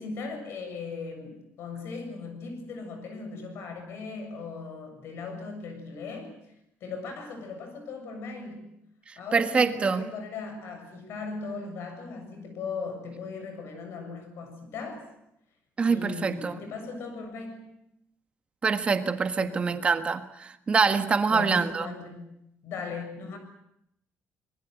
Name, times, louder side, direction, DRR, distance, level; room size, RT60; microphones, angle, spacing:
voice 1, 0.0-6.4 6.8-8.7 9.2-15.1 15.9-17.8 19.4-19.7 21.3-22.3 22.6-23.4, left 4 dB, 60° left, 7 dB, 7.3 m, -38 dB
voice 2, 9.1-10.1 15.8-16.5 18.6-21.9, right 5 dB, 25° right, 9 dB, 1.5 m, -25 dB
25.5 x 22.0 x 8.0 m, 0.77 s
cardioid pair, 170°, 5 cm